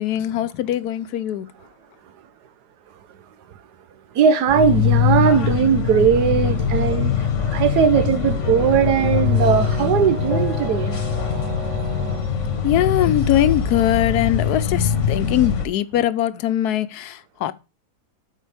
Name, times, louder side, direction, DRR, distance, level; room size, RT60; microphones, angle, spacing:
voice 1, 0.0-1.5 10.4-10.5 12.6-17.5, left 12 dB, 75° left, 1.1 m, -21 dB
voice 2, 4.1-11.0, right 7 dB, 85° right, 1.4 m, -19 dB
sound 1, 4.5-15.6, left 7 dB, 50° left, 1.3 m, -22 dB
Brass instrument, 8.1-12.3, right 5 dB, 50° right, 1.0 m, -35 dB
12.0 x 4.7 x 3.3 m
omnidirectional pair, 1.7 m